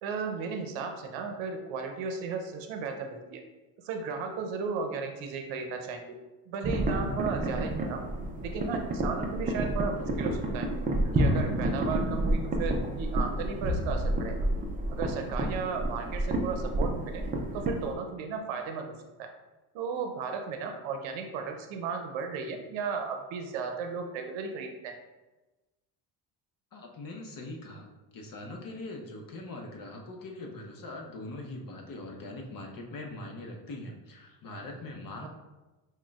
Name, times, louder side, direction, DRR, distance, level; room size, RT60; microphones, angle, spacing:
voice 1, 0.0-3.4 3.8-6.2 6.5-8.1 8.4-10.7 11.1-14.4 14.9-17.3 17.5-19.3 19.7-24.9 35.2-35.3, right 5 dB, 70° right, 5 dB, 0.7 m, -35 dB
sound 1, 6.6-17.9, right 1 dB, 20° right, 0.3 m, -30 dB
voice 2, 26.7-27.9 28.1-35.3, left 2 dB, 45° left, 1 dB, 0.8 m, -42 dB
6.0 x 2.3 x 2.4 m, 1.1 s
supercardioid pair, 85°, 49 cm